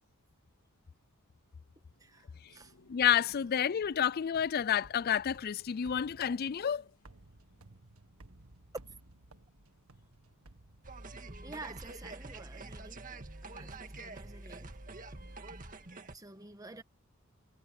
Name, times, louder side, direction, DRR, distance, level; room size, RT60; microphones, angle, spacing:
Laughter, 1.5-7.8, left 2 dB, 75° left, 3.1 m, -63 dB
voice 1, 2.0-2.7 11.4-14.8 16.1-16.8, right 2 dB, 15° right, 1.5 m, -50 dB
sound 1, 2.6-11.4, right 2 dB, 85° right, 1.8 m, -59 dB
voice 2, 2.9-6.8, left 9 dB, 45° left, 0.4 m, -29 dB
sound 2, 10.8-16.2, right 2 dB, 40° right, 1.9 m, -46 dB
head